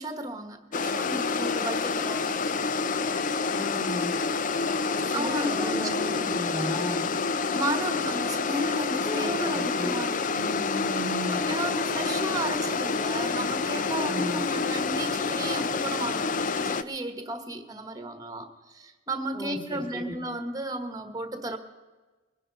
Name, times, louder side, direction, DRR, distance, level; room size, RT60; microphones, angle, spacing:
voice 1, 0.0-2.4 5.1-6.3 7.5-10.2 11.3-21.6, right 1 dB, 20° right, 8 dB, 1.3 m, -34 dB
sound 1, 0.7-16.8, left 4 dB, 45° left, 0.5 m, -28 dB
voice 2, 3.5-4.1 4.9-7.1 9.0-9.9 10.2-11.4 14.0-14.4 19.3-20.1, equal, 20° left, -4 dB, 2.9 m, -35 dB
22.0 x 10.5 x 5.3 m, 1.3 s
head